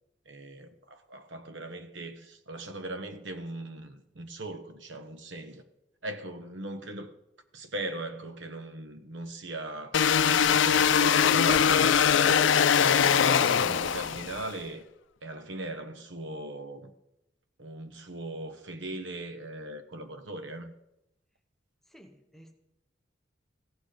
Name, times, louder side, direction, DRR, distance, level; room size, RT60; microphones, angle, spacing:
voice 1, 0.3-5.6 6.0-7.1 7.5-12.0 12.2-12.5 12.8-14.8 15.2-16.9 17.6-20.7, right 1 dB, 75° right, 1.1 m, -39 dB
sound 1, 9.9-14.5, left 7 dB, 80° left, 0.5 m, -22 dB
voice 2, 21.9-22.5, equal, ahead, 0.8 m, -53 dB
15.5 x 7.9 x 5.1 m
head